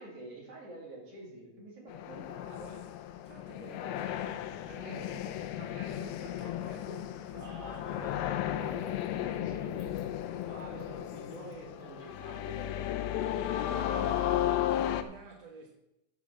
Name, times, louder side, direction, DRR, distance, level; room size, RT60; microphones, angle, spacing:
voice 1, 0.0-2.8 4.9-5.0 7.3-8.9 9.3-9.9 10.5-13.4, right 2 dB, 35° right, -3 dB, 3.6 m, -47 dB
sound 1, 1.9-15.0, left 12 dB, 85° left, 2.1 m, -34 dB
voice 2, 3.2-8.4 8.7-9.6 10.2-10.9 13.9-15.7, right 4 dB, 65° right, 0 dB, 1.6 m, -51 dB
8.4 x 7.2 x 7.3 m, 0.86 s
omnidirectional pair, 4.9 m